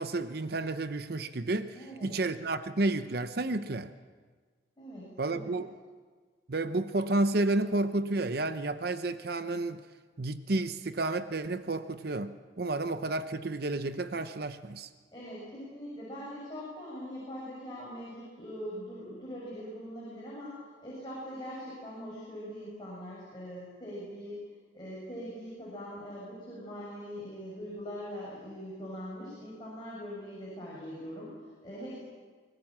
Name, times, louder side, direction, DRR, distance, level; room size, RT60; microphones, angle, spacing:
voice 1, 0.0-3.9 5.2-5.7 6.5-9.8 10.2-14.9, right 2 dB, 55° right, 11 dB, 0.8 m, -31 dB
voice 2, 1.7-2.2 4.8-5.6 15.1-24.4 24.7-32.0, equal, 25° left, -6 dB, 6.7 m, -42 dB
24.5 x 20.0 x 7.4 m, 1.5 s
head